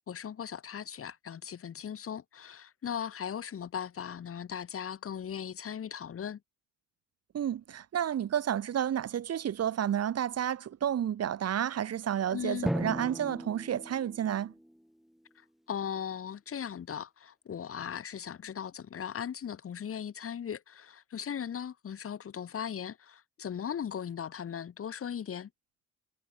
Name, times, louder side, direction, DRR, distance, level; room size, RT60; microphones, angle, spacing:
voice 1, 0.1-6.4 12.3-12.7 15.7-25.5, left 8 dB, 50° left, 3.7 m, -38 dB
voice 2, 7.3-14.5, right 10 dB, 60° right, 2.3 m, -31 dB
Drum, 12.7-15.2, equal, ahead, 4.8 m, -36 dB
cardioid pair, 130°, 29 cm